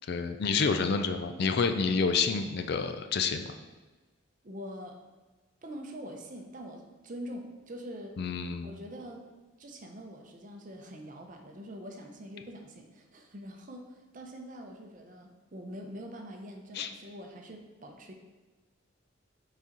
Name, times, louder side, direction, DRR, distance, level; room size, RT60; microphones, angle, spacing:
voice 1, 0.1-3.5 8.2-8.7 16.8-16.9, left 5 dB, 50° left, 8 dB, 0.4 m, -28 dB
voice 2, 4.4-5.0 5.6-8.2 8.6-9.3 9.6-18.1, equal, 40° right, 2 dB, 0.7 m, -44 dB
6.0 x 4.2 x 3.8 m, 1.2 s
head